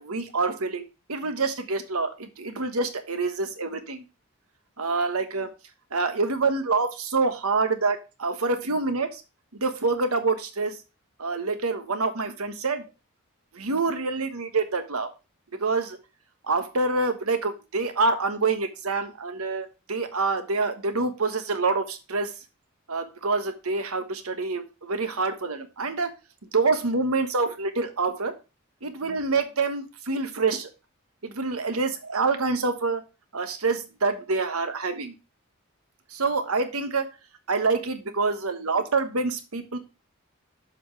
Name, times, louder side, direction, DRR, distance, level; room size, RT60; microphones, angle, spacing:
voice 1, 0.0-4.0 4.8-5.5 5.9-9.2 9.6-10.8 11.2-12.8 13.5-15.1 15.6-16.0 16.5-22.3 22.9-26.1 26.5-28.3 28.8-30.7 31.2-33.0 33.3-35.1 36.1-37.1 37.5-39.8, right 3 dB, 85° right, 8 dB, 1.2 m, -26 dB
7.3 x 5.4 x 4.5 m, 0.29 s
head